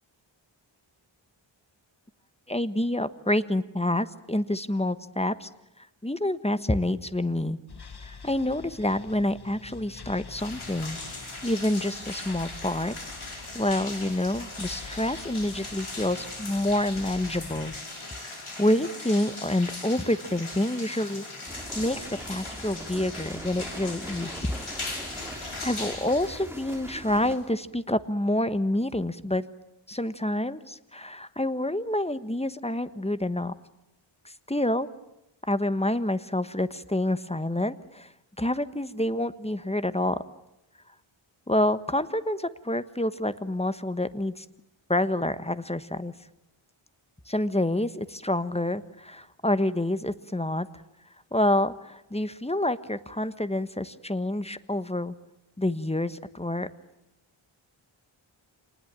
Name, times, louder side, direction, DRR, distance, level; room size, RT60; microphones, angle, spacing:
voice 1, 2.5-5.5 6.0-7.6 8.0-11.0 11.4-12.9 13.5-17.7 18.6-21.2 21.7-24.5 25.6-29.4 29.9-33.5 34.5-34.9 35.5-38.1 38.4-40.2 41.5-44.4 44.9-46.1 47.3-50.7 51.3-55.1 55.6-56.7, left 1 dB, 10° left, 13 dB, 1.2 m, -27 dB
sound 1, 7.7-17.8, left 5 dB, 50° left, 1.3 m, -46 dB
sound 2, 10.4-27.6, left 2 dB, 75° left, 5.2 m, -39 dB
sound 3, 21.5-27.4, right 1 dB, 5° right, 3.1 m, -42 dB
26.5 x 19.5 x 9.0 m, 0.92 s
wide cardioid pair, 45°, 50 cm